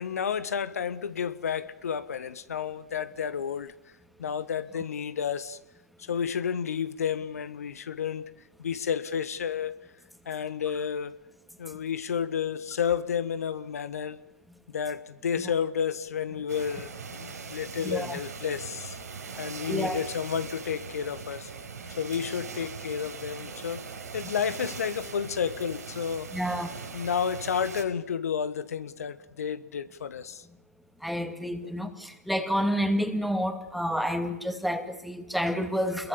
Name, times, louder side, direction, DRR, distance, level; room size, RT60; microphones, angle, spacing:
voice 1, 0.0-3.9 4.2-5.6 6.0-8.2 8.6-9.7 10.2-11.2 11.6-14.2 14.7-19.0 19.4-21.5 22.0-26.3 26.9-30.4 31.6-31.8, left 7 dB, 70° left, 1.4 m, -31 dB
sound 1, 16.5-27.8, right 5 dB, 80° right, 5.7 m, -40 dB
voice 2, 17.8-18.2 19.7-20.0 26.3-26.7 31.0-36.1, equal, ahead, 2.6 m, -29 dB
29.0 x 22.5 x 7.0 m
figure-of-eight pair, 115°, 9 cm